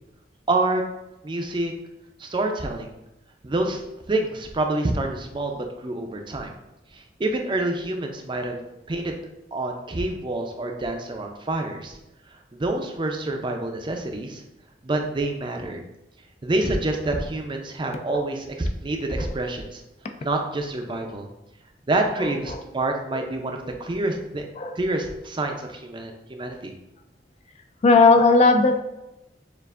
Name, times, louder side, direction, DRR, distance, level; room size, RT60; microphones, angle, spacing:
voice 1, 0.5-0.8 1.2-1.7 2.2-2.9 3.4-3.8 4.1-6.5 6.9-8.6 8.9-9.2 9.5-12.0 12.3-14.4 14.8-15.8 16.4-19.8 20.2-21.3 21.9-24.4 24.7-26.7, right 2 dB, 25° right, 3 dB, 0.4 m, -27 dB
voice 2, 22.2-22.6 23.1-23.2 24.6-24.8 27.8-28.8, left 3 dB, 35° left, 6 dB, 0.3 m, -18 dB
6.6 x 2.5 x 2.4 m, 0.91 s
head